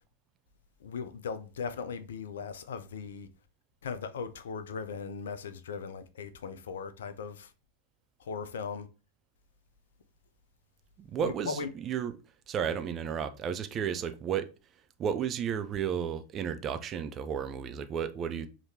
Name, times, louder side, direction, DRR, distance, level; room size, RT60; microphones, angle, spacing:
voice 1, 0.8-3.3 3.8-7.5 8.2-8.9 11.2-11.7, left 5 dB, 65° left, 0.5 m, -38 dB
voice 2, 11.0-12.1 12.5-14.5 15.0-18.5, right 8 dB, 30° right, 0.4 m, -33 dB
4.9 x 2.9 x 2.7 m
figure-of-eight pair, 90°, 0 cm